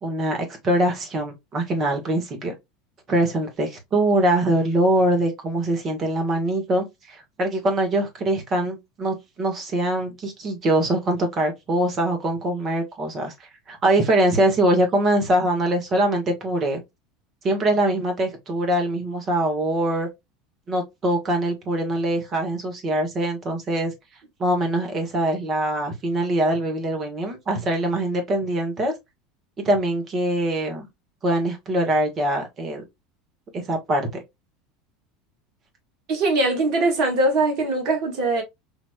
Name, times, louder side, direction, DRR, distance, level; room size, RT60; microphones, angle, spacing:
voice 1, 0.0-2.5 3.1-16.8 17.4-20.1 20.7-23.9 24.4-28.9 29.6-30.9 31.2-32.8 33.5-34.1, right 1 dB, 35° right, 1.5 m, -23 dB
voice 2, 36.1-38.4, right 2 dB, 55° right, 1.5 m, -21 dB
4.0 x 2.9 x 2.2 m
figure-of-eight pair, 75°, 0 cm